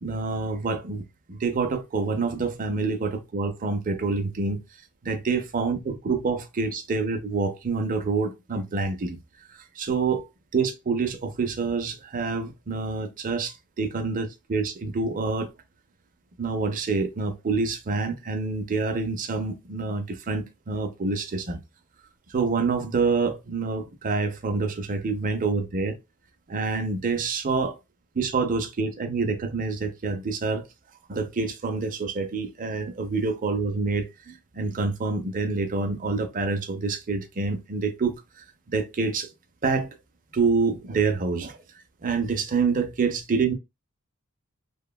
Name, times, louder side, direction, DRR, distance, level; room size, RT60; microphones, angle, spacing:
voice 1, 0.0-1.0 1.3-4.6 5.0-9.2 9.8-10.3 10.5-15.5 16.4-21.6 22.3-26.0 26.5-27.8 28.2-30.7 31.1-38.2 38.7-39.3 39.6-39.9 40.3-41.6 42.0-43.5, right 4 dB, 35° right, 0.5 m, -27 dB
2.9 x 2.1 x 2.2 m
head